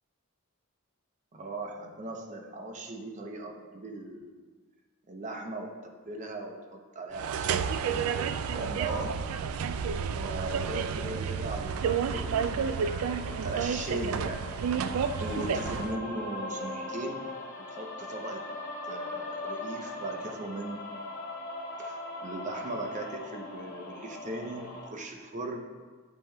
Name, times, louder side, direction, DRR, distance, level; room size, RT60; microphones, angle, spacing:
voice 1, 1.3-4.4 5.1-9.1 10.1-14.5 15.2-17.3 17.6-18.4 18.9-20.8 21.8-25.7, right 2 dB, 35° right, 2 dB, 0.7 m, -38 dB
sound 1, 7.1-16.0, right 6 dB, 70° right, 0.3 m, -31 dB
sound 2, 11.3-24.9, left 2 dB, 40° left, 1.1 m, -40 dB
8.5 x 7.2 x 2.3 m, 1.4 s
head